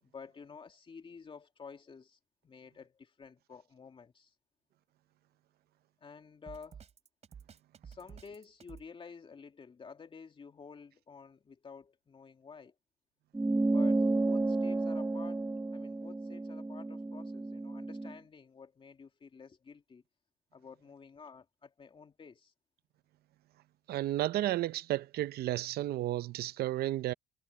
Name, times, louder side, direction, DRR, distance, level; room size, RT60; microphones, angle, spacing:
voice 1, 0.0-4.3 6.0-6.8 7.8-12.7 13.6-15.4 15.7-20.0 20.5-22.5, left 5 dB, 30° left, 2.6 m, -51 dB
Drum kit, 6.5-8.9, right 7 dB, 40° right, 3.9 m, -51 dB
sound 1, 13.3-18.1, right 2 dB, 10° right, 0.6 m, -31 dB
voice 2, 23.9-27.1, right 14 dB, 70° right, 0.7 m, -32 dB
cardioid pair, 110°, 17 cm